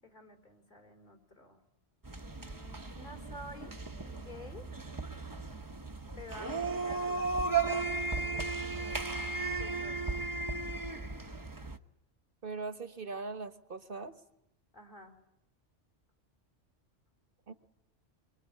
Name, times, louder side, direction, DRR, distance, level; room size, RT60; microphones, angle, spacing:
voice 1, 0.0-1.6 2.4-4.7 6.2-7.9 9.6-10.0 14.7-15.2, left 1 dB, 45° left, 3 dB, 3.6 m, -50 dB
sound 1, 2.0-11.8, right 4 dB, 20° right, 1.0 m, -35 dB
voice 2, 12.4-14.1 17.5-17.6, right 3 dB, 50° right, 10 dB, 1.4 m, -40 dB
25.0 x 23.5 x 10.0 m, 0.83 s
omnidirectional pair, 1.2 m